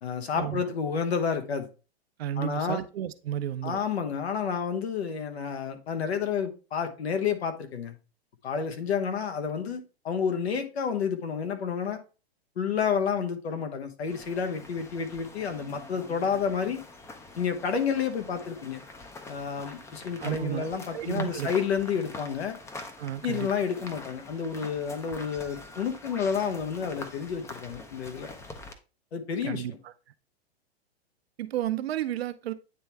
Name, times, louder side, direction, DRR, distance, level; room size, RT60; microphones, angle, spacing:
voice 1, 0.0-1.7 2.4-2.8 3.6-7.9 8.4-12.0 12.6-16.8 17.4-18.8 19.3-22.6 23.2-28.3 29.1-29.6, left 6 dB, 80° left, 1.3 m, -30 dB
voice 2, 2.2-3.8 20.2-21.5 23.0-23.5 29.4-29.7 31.4-32.5, right 12 dB, 70° right, 0.7 m, -32 dB
sound 1, 14.1-28.7, left 2 dB, 10° left, 0.5 m, -45 dB
9.3 x 3.1 x 3.4 m
hypercardioid pair, 125°, 32 cm